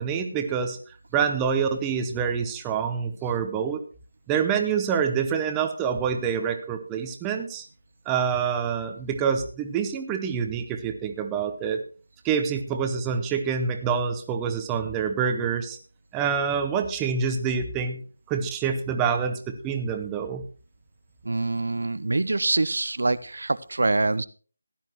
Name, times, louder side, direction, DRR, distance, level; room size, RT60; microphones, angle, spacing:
voice 1, 0.0-3.8 4.3-7.6 8.1-11.8 12.2-15.8 16.1-20.4, right 6 dB, 10° right, 5 dB, 0.7 m, -26 dB
voice 2, 21.2-24.2, right 2 dB, 70° right, 15 dB, 0.6 m, -25 dB
15.5 x 10.0 x 3.0 m, 0.39 s
figure-of-eight pair, 170°, 0 cm